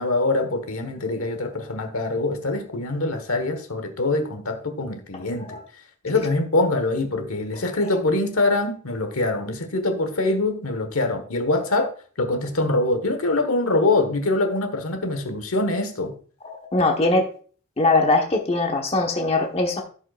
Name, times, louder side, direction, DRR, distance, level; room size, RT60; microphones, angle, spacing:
voice 1, 0.0-5.6 6.0-16.1, left 2 dB, 75° left, 1.3 m, -24 dB
voice 2, 16.7-17.2 17.8-19.8, left 2 dB, 30° left, 1.1 m, -20 dB
15.5 x 5.3 x 2.4 m
head